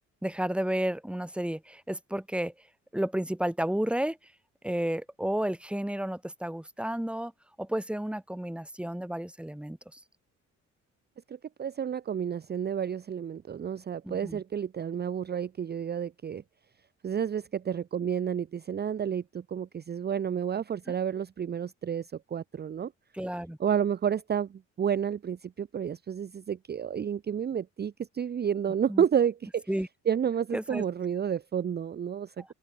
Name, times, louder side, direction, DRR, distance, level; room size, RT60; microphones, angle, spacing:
voice 1, 0.2-2.5 2.9-4.2 4.6-7.3 7.6-10.0 14.0-14.4 23.1-23.6 28.9-29.0 29.7-29.9 30.5-30.8 32.4-32.5, right 1 dB, 5° right, 2.2 m, -32 dB
voice 2, 11.3-16.4 17.0-22.9 23.6-24.5 24.8-29.6 30.1-32.5, right 8 dB, 35° right, 0.6 m, -30 dB
open air
cardioid pair, 90°, 30 cm